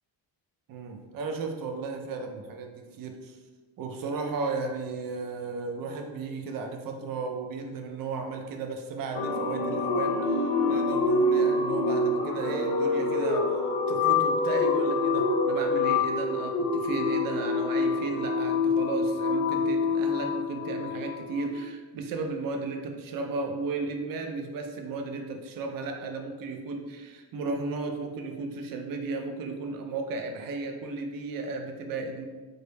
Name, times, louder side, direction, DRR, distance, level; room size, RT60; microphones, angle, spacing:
voice 1, 0.7-3.4 3.8-13.6 13.9-32.3, right 3 dB, 50° right, 4 dB, 0.4 m, -34 dB
sound 1, 9.1-21.5, left 3 dB, 65° left, 0.6 m, -26 dB
2.0 x 2.0 x 3.1 m, 1.3 s
cardioid pair, 65°, 47 cm